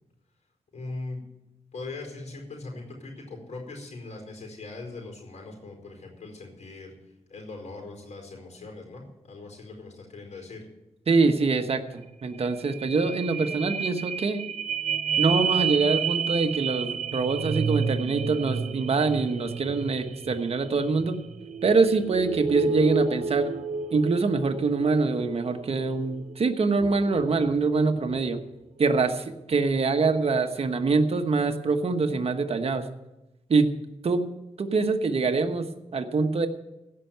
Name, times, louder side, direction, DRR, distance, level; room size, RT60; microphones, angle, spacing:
voice 1, 0.7-1.2 1.7-6.9 7.3-10.6, left 3 dB, 75° left, 2 dB, 4.8 m, -40 dB
voice 2, 11.1-14.4 15.2-21.2 21.6-23.5 23.9-28.5 28.8-32.9 33.5-33.7 34.0-34.2 34.6-35.7 35.9-36.5, right 4 dB, 55° right, 6 dB, 1.2 m, -24 dB
sound 1, 12.0-12.1 12.4-28.3 28.8-28.9, right 5 dB, 85° right, 0.6 m, -31 dB
16.5 x 5.7 x 9.2 m, 0.95 s
wide cardioid pair, 95°, 12 cm